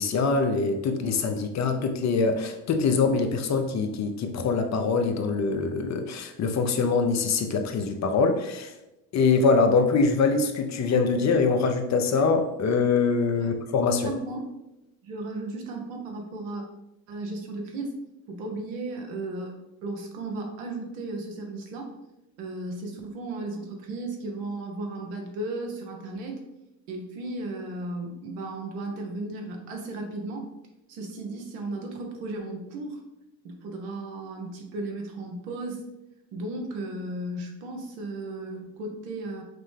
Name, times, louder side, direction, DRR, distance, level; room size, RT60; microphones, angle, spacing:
voice 1, 0.0-8.7 9.1-14.1, left 4 dB, 45° left, 6 dB, 0.7 m, -24 dB
voice 2, 14.0-14.4 15.0-16.6 17.1-18.0 18.3-21.9 22.4-26.4 26.9-30.5 30.9-33.0 33.4-35.8 36.3-39.4, right 2 dB, 85° right, 2 dB, 1.0 m, -35 dB
5.9 x 2.1 x 3.3 m, 0.90 s
hypercardioid pair, 70°, 40 cm